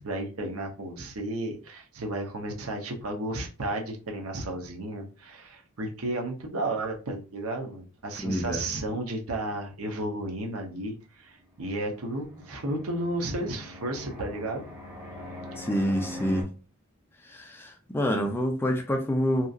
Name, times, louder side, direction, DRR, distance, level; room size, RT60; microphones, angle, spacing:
voice 1, 0.0-14.6, right 1 dB, 65° right, 2 dB, 0.7 m, -33 dB
voice 2, 8.2-8.8 15.6-16.5 17.3-19.5, equal, 10° left, 2 dB, 0.3 m, -27 dB
Fixed-wing aircraft airplane, 11.5-16.4, left 1 dB, 10° right, 1.0 m, -42 dB
2.8 x 2.5 x 2.4 m, 0.35 s
head